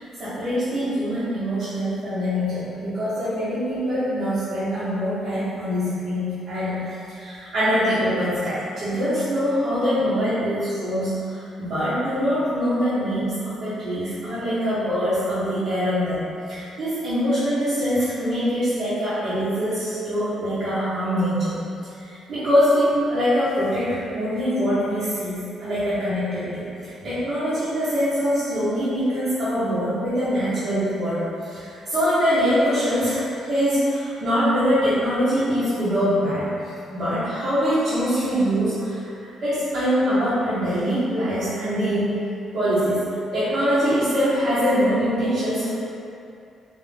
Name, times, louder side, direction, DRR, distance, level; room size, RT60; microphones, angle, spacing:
voice 1, 0.0-16.2 16.5-21.6 22.0-36.5 36.9-39.0 39.4-42.1 42.5-43.0 43.3-45.8, equal, 60° right, -15 dB, 1.3 m, -23 dB
3.6 x 3.0 x 3.4 m, 2.6 s
cardioid pair, 90°, 0 cm